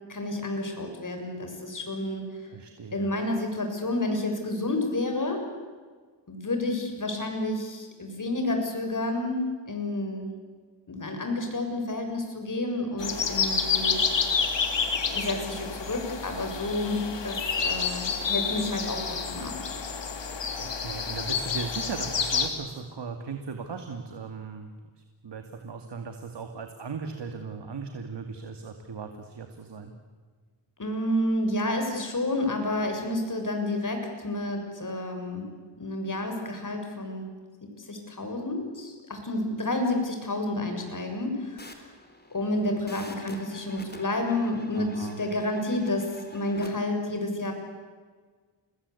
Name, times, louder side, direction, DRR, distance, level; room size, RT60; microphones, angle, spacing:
voice 1, 0.1-2.3 2.9-5.5 6.3-10.3 10.9-14.0 15.1-19.6 30.8-35.5 35.8-37.3 37.6-41.8 42.3-47.5, left 1 dB, 40° left, 4 dB, 7.0 m, -30 dB
voice 2, 2.5-3.1 20.2-24.7 25.2-29.9 44.8-45.2, right 5 dB, 60° right, 6 dB, 2.4 m, -38 dB
sound 1, 13.0-22.5, left 6 dB, 65° left, 3.2 m, -29 dB
sound 2, 41.6-46.7, left 1 dB, 20° left, 4.1 m, -47 dB
29.5 x 21.0 x 8.4 m, 1.5 s
cardioid pair, 75°, 46 cm